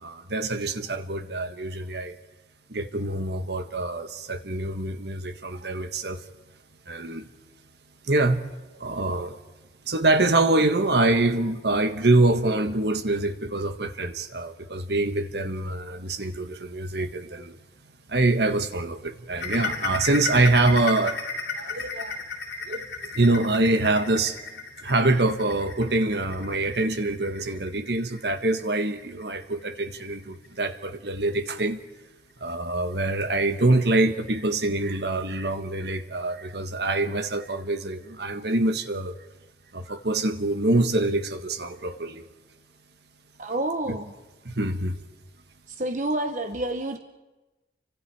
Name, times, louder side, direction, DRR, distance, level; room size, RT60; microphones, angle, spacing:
voice 1, 0.0-2.1 2.7-6.2 6.9-7.3 8.1-8.4 8.8-9.3 9.9-17.5 18.1-21.2 21.5-22.2 22.7-24.4 24.8-31.8 32.4-39.1 39.7-42.2 43.9-44.0 44.4-45.0, right 2 dB, 65° right, 1.5 m, -25 dB
sound 1, 19.4-30.7 31.1-31.3 31.7-31.8 32.3-32.4, left 4 dB, 75° left, 4.2 m, -35 dB
voice 2, 43.4-44.1 45.7-47.0, right 1 dB, 40° right, 1.0 m, -28 dB
30.0 x 25.0 x 4.8 m
head